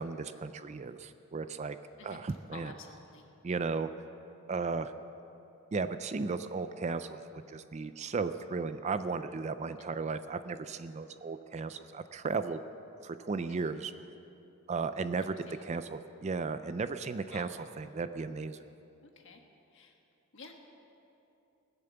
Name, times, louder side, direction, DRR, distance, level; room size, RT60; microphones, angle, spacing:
voice 1, 0.0-1.8 2.0-2.7 3.4-3.9 4.5-4.9 5.7-12.6 13.0-13.9 14.7-15.3 15.6-17.5 17.8-18.6, right 4 dB, 30° right, 11 dB, 0.3 m, -35 dB
voice 2, 2.5-3.3 9.8-9.9 13.5-13.8 15.2-15.8 17.3-17.5 19.0-19.4 19.7-20.0 20.3-20.5, left 4 dB, 55° left, 3 dB, 1.4 m, -51 dB
20.0 x 7.1 x 6.8 m, 2.9 s
head